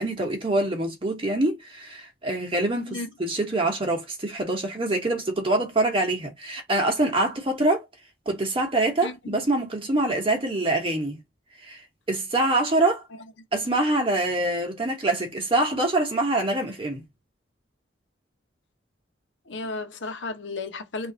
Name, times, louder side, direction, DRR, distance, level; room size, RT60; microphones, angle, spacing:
voice 1, 0.0-7.8 8.3-11.2 11.6-11.8 12.1-13.0 13.5-17.0, right 2 dB, 30° right, 1.1 m, -25 dB
voice 2, 9.0-9.4 19.5-21.1, left 3 dB, 85° left, 0.9 m, -34 dB
3.3 x 2.6 x 3.9 m
head